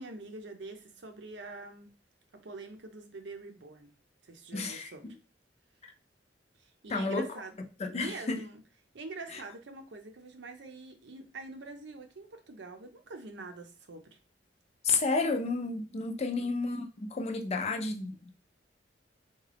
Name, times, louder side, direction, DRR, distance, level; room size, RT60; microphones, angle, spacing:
voice 1, 0.0-1.9 2.3-3.9 4.2-5.2 6.6-7.6 7.9-8.6 8.9-14.2 16.3-16.5, right 3 dB, 80° right, 0.6 m, -45 dB
voice 2, 4.5-4.9 6.9-7.3 7.8-8.4 14.8-16.9 17.1-18.3, left 3 dB, 35° left, 0.4 m, -31 dB
3.6 x 2.3 x 3.3 m
head